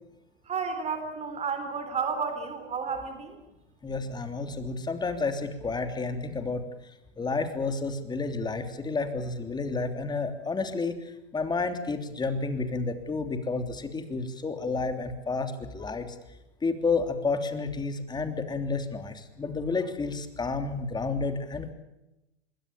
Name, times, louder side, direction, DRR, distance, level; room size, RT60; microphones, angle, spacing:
voice 1, 0.5-3.4, right 5 dB, 20° right, 7 dB, 3.9 m, -32 dB
voice 2, 3.8-6.6 7.2-10.9 11.3-16.1 16.6-21.7, left 4 dB, 10° left, 7 dB, 3.3 m, -30 dB
25.0 x 22.5 x 7.0 m, 0.94 s
hypercardioid pair, 120°, 34 cm